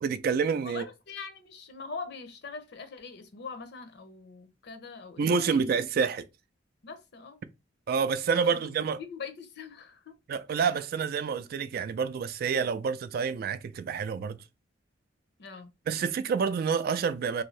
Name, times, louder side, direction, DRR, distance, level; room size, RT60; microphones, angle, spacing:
voice 1, 0.0-0.9 5.2-6.3 7.9-9.0 10.3-14.4 15.9-17.4, right 6 dB, 55° right, 0.3 m, -28 dB
voice 2, 0.6-5.7 6.8-7.4 8.6-8.7 9.0-10.1 10.5-10.7 15.4-15.7, left 5 dB, 60° left, 0.6 m, -42 dB
2.6 x 2.6 x 3.1 m
head